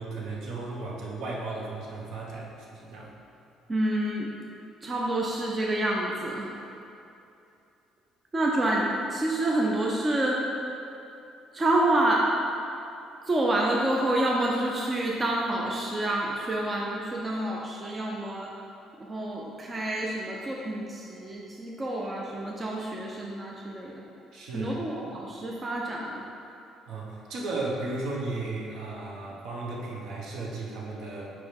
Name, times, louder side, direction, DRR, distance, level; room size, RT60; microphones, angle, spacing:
voice 1, 0.0-3.2 24.3-24.8 26.9-31.3, right 2 dB, 65° right, -3 dB, 1.2 m, -35 dB
voice 2, 3.7-4.3 4.8-6.5 8.3-10.4 11.5-12.3 13.3-18.5 19.0-24.0 24.5-26.2, right 1 dB, 20° right, -3 dB, 0.5 m, -28 dB
5.0 x 4.6 x 5.2 m, 2.7 s
cardioid pair, 155°, 0 cm